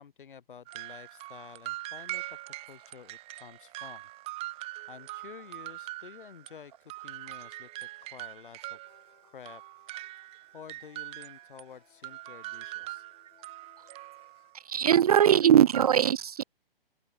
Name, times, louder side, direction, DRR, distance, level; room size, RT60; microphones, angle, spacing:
voice 1, 0.0-2.4 2.7-4.1 4.5-8.8 9.3-9.6 10.5-13.0, left 7 dB, 60° left, 5.6 m, -50 dB
sound 1, 0.7-6.6 6.9-11.6 12.0-14.5 15.7-15.9, right 18 dB, 20° right, 1.9 m, -42 dB
sound 2, 8.9-14.5, left 13 dB, 20° left, 6.2 m, -66 dB
voice 2, 14.7-16.4, right 9 dB, 40° right, 0.4 m, -21 dB
open air
figure-of-eight pair, 135°, 29 cm